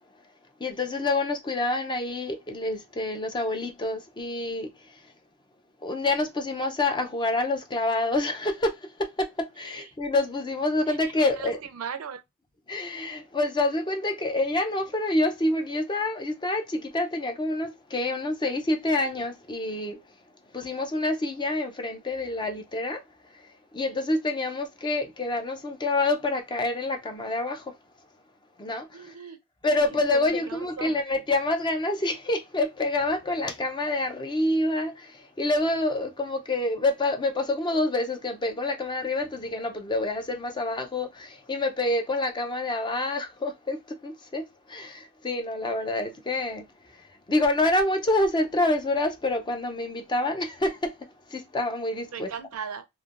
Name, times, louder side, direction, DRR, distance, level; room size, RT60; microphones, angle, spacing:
voice 1, 0.6-4.7 5.8-11.6 12.7-20.0 20.5-23.0 23.7-27.7 28.6-29.1 29.6-46.6 47.0-52.3, left 2 dB, 20° left, 0.5 m, -27 dB
voice 2, 11.4-12.2 28.9-29.4 29.9-30.9 52.1-52.9, right 6 dB, 90° right, 0.4 m, -37 dB
3.1 x 2.1 x 2.4 m
head